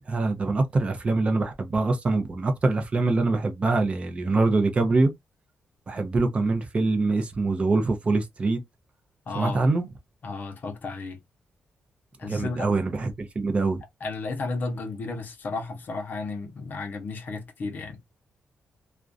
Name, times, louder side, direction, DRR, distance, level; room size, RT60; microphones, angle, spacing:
voice 1, 0.1-5.1 5.9-8.6 9.3-9.9 12.3-13.8, right 3 dB, 30° right, 0.5 m, -24 dB
voice 2, 9.3-9.6 10.2-11.2 12.2-12.7 14.0-18.0, left 3 dB, 50° left, 0.7 m, -33 dB
2.4 x 2.1 x 2.4 m
wide cardioid pair, 150°, 4 cm